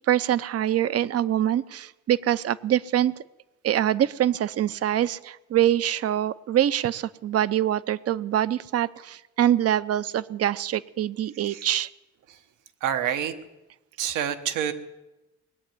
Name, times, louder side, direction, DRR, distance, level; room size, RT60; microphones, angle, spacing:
voice 1, 0.1-3.1 3.6-11.9, right 11 dB, 55° right, 17 dB, 0.6 m, -24 dB
voice 2, 12.8-13.3 14.0-14.7, right 9 dB, 85° right, 8 dB, 1.2 m, -26 dB
20.0 x 7.9 x 9.2 m, 1.0 s
cardioid pair, 90°, 30 cm